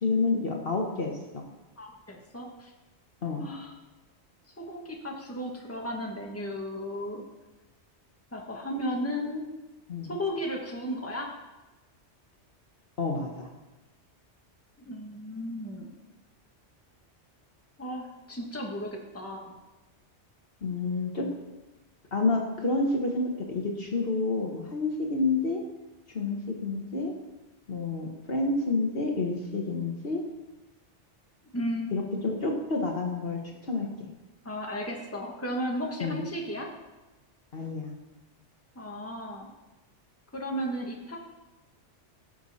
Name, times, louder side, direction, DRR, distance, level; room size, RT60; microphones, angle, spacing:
voice 1, 0.0-1.4 3.2-3.4 9.9-10.1 13.0-13.5 20.6-21.3 22.1-25.6 26.1-27.1 27.7-30.2 31.9-33.9 36.0-36.2 37.5-37.9, left 3 dB, 55° left, 1 dB, 1.5 m, -29 dB
voice 2, 1.8-2.7 3.4-3.7 4.6-7.2 8.3-9.5 10.1-11.3 14.8-15.9 17.8-19.6 31.5-32.0 34.4-36.7 38.7-39.5 40.3-41.2, equal, 10° left, -1 dB, 1.5 m, -34 dB
17.5 x 6.5 x 4.2 m, 1.1 s
omnidirectional pair, 1.2 m